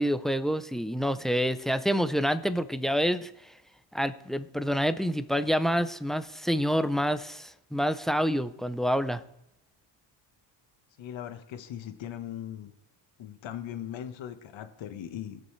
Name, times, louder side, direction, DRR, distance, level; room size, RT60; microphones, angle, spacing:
voice 1, 0.0-3.5 3.9-9.2, equal, ahead, 12 dB, 0.5 m, -27 dB
voice 2, 11.0-12.7 13.2-15.4, left 10 dB, 65° left, 8 dB, 1.3 m, -39 dB
17.5 x 6.8 x 3.2 m, 0.81 s
supercardioid pair, 75°, 49 cm